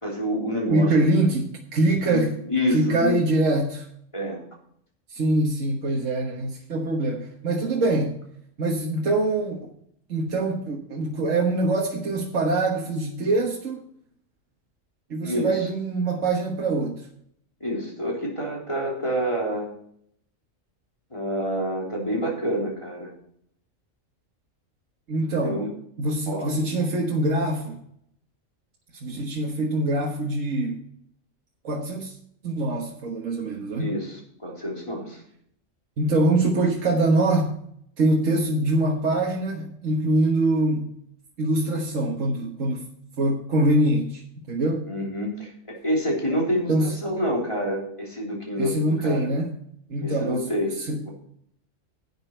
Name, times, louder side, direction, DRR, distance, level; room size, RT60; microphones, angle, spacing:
voice 1, 0.0-1.2 2.1-3.1 4.1-4.4 15.2-15.7 17.6-19.7 21.1-23.1 25.4-25.7 26.3-26.5 33.8-35.2 44.9-46.7 47.0-49.3 50.0-50.7 51.0-51.1, equal, 25° left, -2 dB, 3.5 m, -27 dB
voice 2, 0.7-2.3 2.7-3.9 5.1-8.2 8.6-9.7 10.1-13.8 15.1-17.1 25.1-25.6 26.0-27.8 29.0-30.8 31.6-32.1 32.4-33.9 36.0-37.5 38.0-40.9 41.4-42.9 43.2-44.8 46.7-46.9 48.6-49.5 49.9-51.0, right 2 dB, 70° right, -1 dB, 1.7 m, -24 dB
11.5 x 8.3 x 4.5 m, 0.67 s
omnidirectional pair, 1.4 m